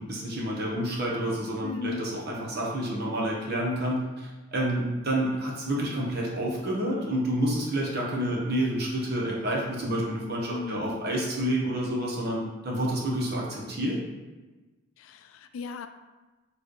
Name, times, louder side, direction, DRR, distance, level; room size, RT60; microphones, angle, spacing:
voice 1, 0.0-14.0, right 1 dB, 50° right, -3 dB, 1.0 m, -29 dB
voice 2, 1.6-2.0 10.5-11.0 15.0-15.9, left 5 dB, 85° left, 9 dB, 0.3 m, -36 dB
4.6 x 3.3 x 3.1 m, 1.2 s
head